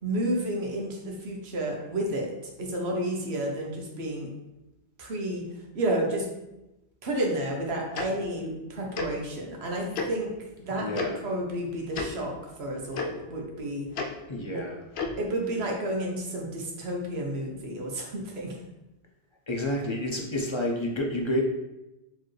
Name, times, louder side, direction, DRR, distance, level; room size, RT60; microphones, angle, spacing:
voice 1, 0.0-4.3 5.0-5.4 5.7-6.3 7.0-13.9 14.5-14.6 15.2-18.6, right 1 dB, 70° right, 0 dB, 1.1 m, -31 dB
Tick-tock, 7.9-8.1 8.9-9.1 9.9-10.1 10.9-11.1 11.9-12.1 12.9-13.1 13.9-14.1 14.9-15.1, left 4 dB, 70° left, 0.8 m, -30 dB
voice 2, 10.7-11.2 14.3-14.8 19.5-21.4, left 1 dB, 40° left, 0 dB, 0.4 m, -29 dB
4.5 x 3.1 x 3.1 m, 0.97 s
omnidirectional pair, 1.1 m